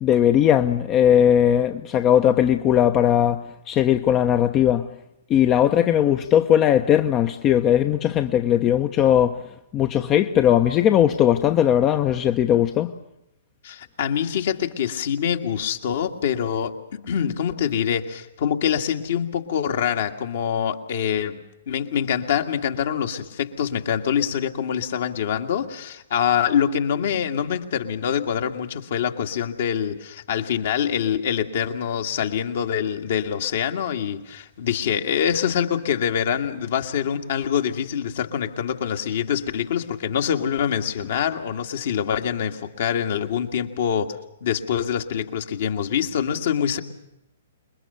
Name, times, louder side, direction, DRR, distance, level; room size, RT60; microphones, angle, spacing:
voice 1, 0.0-4.9 5.3-9.4 9.7-12.9, left 10 dB, 25° left, 0.9 m, -19 dB
voice 2, 13.6-46.8, left 8 dB, 55° left, 1.9 m, -25 dB
27.5 x 22.0 x 6.8 m
figure-of-eight pair, 115°, 0 cm